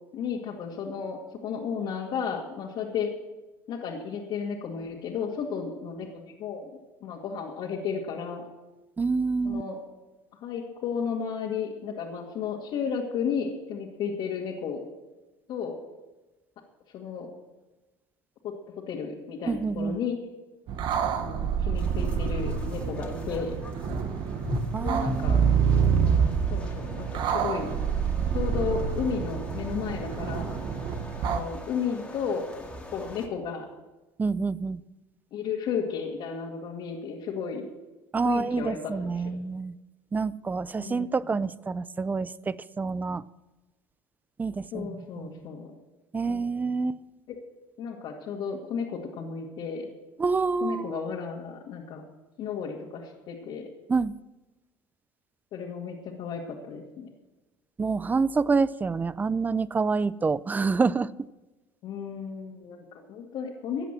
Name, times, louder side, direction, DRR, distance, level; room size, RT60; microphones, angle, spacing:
voice 1, 0.1-3.1 3.7-6.7 7.0-8.5 9.4-9.8 10.4-14.8 15.5-15.8 16.9-17.3 18.4-18.5 18.9-20.2 21.1-23.5 24.8-25.4 26.5-27.8 28.3-30.6 31.2-32.4 32.9-33.7 35.3-37.7 38.2-39.3 40.8-41.1 44.7-45.7 46.3-46.5 47.8-49.9 50.6-52.0 52.4-53.7 55.5-57.1 61.8-63.9, left 6 dB, 60° left, -3 dB, 2.1 m, -33 dB
voice 2, 9.0-9.6 19.5-20.0 24.7-25.4 34.2-34.8 38.1-39.7 40.1-43.2 44.4-45.4 46.1-47.0 50.2-51.0 53.9-54.1 57.8-61.1, right 4 dB, 20° right, 19 dB, 0.5 m, -27 dB
sound 1, 20.7-31.4, right 7 dB, 55° right, 1.2 m, -27 dB
sound 2, 21.7-33.3, left 1 dB, 15° left, 2.0 m, -40 dB
14.5 x 8.2 x 7.5 m, 1.1 s
supercardioid pair, 90°, 9 cm